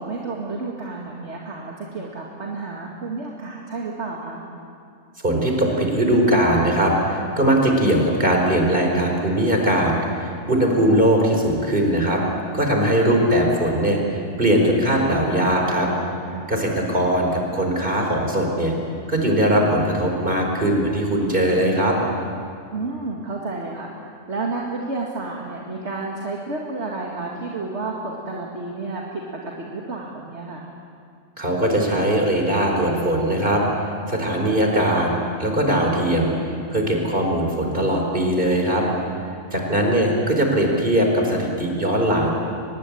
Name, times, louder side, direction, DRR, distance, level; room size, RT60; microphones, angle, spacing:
voice 1, 0.0-4.4 16.3-16.5 21.5-21.9 22.7-23.9 24.3-30.7 39.5-39.7, right 3 dB, 60° right, -2 dB, 2.5 m, -31 dB
voice 2, 5.2-12.2 12.5-15.9 16.5-18.7 19.1-21.9 31.4-33.6 34.1-35.1 35.4-38.8 39.5-42.3, right 1 dB, 40° right, 1 dB, 4.7 m, -20 dB
24.0 x 21.0 x 8.7 m, 2.4 s
omnidirectional pair, 1.3 m